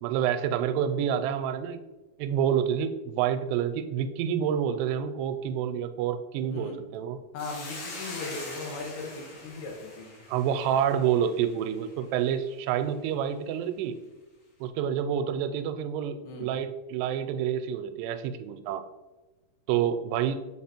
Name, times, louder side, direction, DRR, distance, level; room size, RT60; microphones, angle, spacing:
voice 1, 0.0-1.8 2.2-7.2 10.3-14.0 14.6-18.8 19.7-20.4, right 9 dB, 85° right, 10 dB, 2.7 m, -28 dB
voice 2, 6.5-6.8 7.3-10.2 16.3-16.5, left 3 dB, 70° left, 0 dB, 3.2 m, -38 dB
Hiss, 7.4-11.9, left 2 dB, 55° left, 2.5 m, -43 dB
7.8 x 4.0 x 4.3 m, 1.2 s
omnidirectional pair, 4.8 m